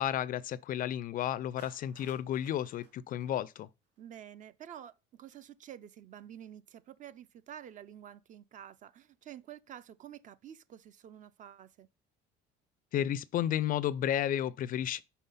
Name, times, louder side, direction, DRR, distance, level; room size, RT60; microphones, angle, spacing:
voice 1, 0.0-3.7 12.9-15.0, left 11 dB, 45° left, 0.4 m, -32 dB
Clapping, 1.6-4.0, right 5 dB, 85° right, 1.9 m, -60 dB
voice 2, 4.0-11.9, right 10 dB, 40° right, 0.5 m, -49 dB
5.5 x 4.1 x 5.4 m
cardioid pair, 115°, 20 cm